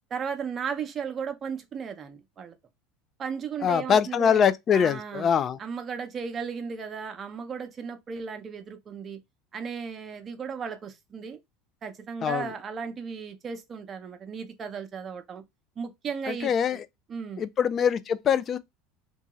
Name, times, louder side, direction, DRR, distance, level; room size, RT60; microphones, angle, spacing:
voice 1, 0.1-2.5 3.2-4.5 4.7-5.3 5.6-9.2 9.5-11.4 11.8-15.4 15.8-16.8 17.1-17.4, right 6 dB, 35° right, 0.6 m, -35 dB
voice 2, 3.6-5.6 12.2-12.5 16.3-16.8 17.4-18.6, left 7 dB, 40° left, 0.3 m, -23 dB
2.7 x 2.3 x 2.9 m
hypercardioid pair, 95°, 0 cm